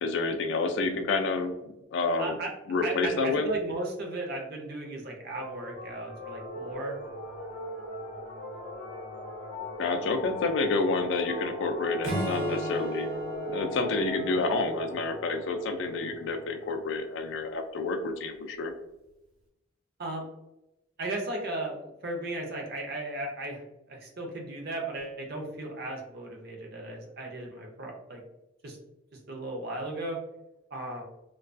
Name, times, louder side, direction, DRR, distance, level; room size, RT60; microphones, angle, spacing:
voice 1, 0.0-1.5 1.9-2.4 2.7-3.5 9.8-13.1 13.5-18.7, left 3 dB, 60° left, 6 dB, 0.3 m, -29 dB
voice 2, 2.2-2.5 2.8-7.0 20.0-20.2 21.0-28.2 28.6-28.8 29.3-30.2 30.7-31.0, right 1 dB, 50° right, 1 dB, 0.5 m, -36 dB
sound 1, 5.3-17.2, equal, 30° left, 0.7 m, -38 dB
Acoustic guitar / Strum, 12.0-15.5, equal, 75° right, 0.8 m, -37 dB
2.3 x 2.2 x 2.4 m, 0.92 s
head